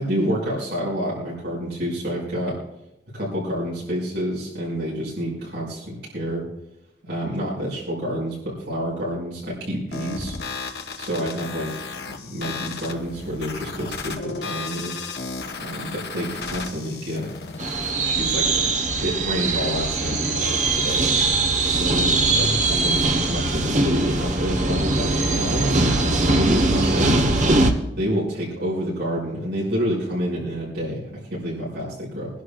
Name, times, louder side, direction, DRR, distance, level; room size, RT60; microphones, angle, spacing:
voice 1, 0.0-2.6 3.1-6.5 7.0-10.3 11.0-15.0 15.6-17.3 17.9-18.5 19.0-21.1 21.6-25.7 26.3-27.3 27.9-32.3, equal, 75° right, -6 dB, 5.9 m, -28 dB
sound 1, 9.9-17.9, left 4 dB, 65° left, 1.1 m, -34 dB
sound 2, 17.6-27.7, right 2 dB, 45° right, 1.1 m, -21 dB
25.5 x 11.5 x 2.4 m, 0.86 s
head